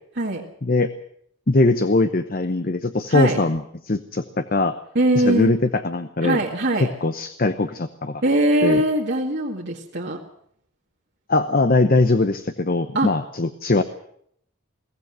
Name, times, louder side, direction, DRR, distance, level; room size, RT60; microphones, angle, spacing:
voice 1, 0.2-0.5 3.1-3.4 5.0-5.5 6.2-6.9 8.2-10.2 12.9-13.1, right 1 dB, 55° right, -1 dB, 2.0 m, -21 dB
voice 2, 1.5-4.7 5.1-6.4 6.8-8.2 8.6-8.8 11.3-13.8, left 2 dB, 45° left, 10 dB, 0.8 m, -21 dB
22.0 x 16.5 x 7.6 m, 0.68 s
head